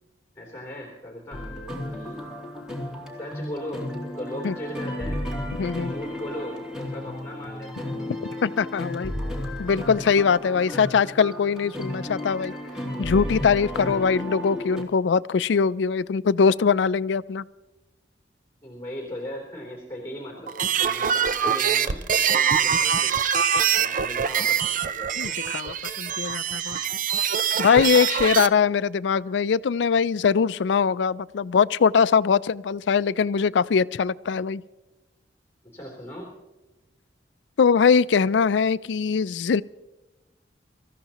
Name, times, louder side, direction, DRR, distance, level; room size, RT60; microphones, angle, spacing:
voice 1, 0.3-1.4 1.9-2.3 3.1-3.8 4.2-5.2 5.8-7.9 13.7-14.2 18.6-23.2 23.7-25.3 35.7-36.3, left 1 dB, 15° left, 3.4 m, -38 dB
sound 1, 1.3-14.8, left 1 dB, 5° right, 2.8 m, -33 dB
voice 2, 5.6-5.9 8.4-9.1 9.6-12.5 13.0-17.4 25.2-26.8 27.6-34.6 37.6-39.6, left 6 dB, 85° left, 0.4 m, -22 dB
sound 2, 20.5-28.5, right 7 dB, 50° right, 0.6 m, -24 dB
25.0 x 14.5 x 3.0 m
head